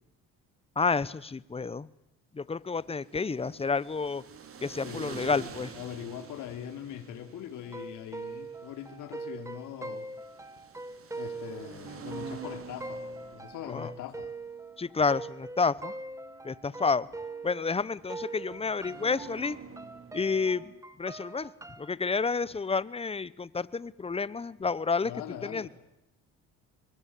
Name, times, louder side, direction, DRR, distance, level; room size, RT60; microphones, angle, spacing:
voice 1, 0.8-1.9 2.3-4.2 4.6-5.7 13.7-13.9 14.8-15.9 16.4-17.1 17.4-19.6 20.1-20.6 21.0-21.5 21.8-25.1 25.4-25.7, left 4 dB, 20° left, 19 dB, 1.0 m, -30 dB
sound 1, 2.9-20.8, right 6 dB, 45° right, 3.2 m, -48 dB
voice 2, 4.8-10.1 11.2-13.0 13.3-14.3 25.0-25.7, left 10 dB, 75° left, 6 dB, 3.0 m, -42 dB
sound 2, 7.6-17.8 18.1-21.9, right 3 dB, 10° right, 1.8 m, -42 dB
26.0 x 22.5 x 8.5 m, 0.84 s
cardioid pair, 100°, 31 cm